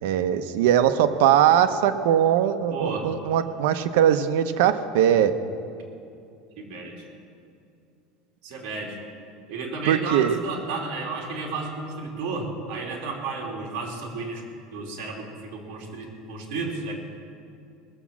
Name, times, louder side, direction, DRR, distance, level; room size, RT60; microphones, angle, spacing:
voice 1, 0.0-5.3 9.9-10.4, right 10 dB, 75° right, 10 dB, 0.8 m, -20 dB
voice 2, 2.7-3.1 6.6-7.0 8.4-9.0 9.5-14.4 14.7-16.9, right 4 dB, 55° right, -1 dB, 2.8 m, -32 dB
19.5 x 7.2 x 7.3 m, 2.5 s
cardioid pair, 180°, 0 cm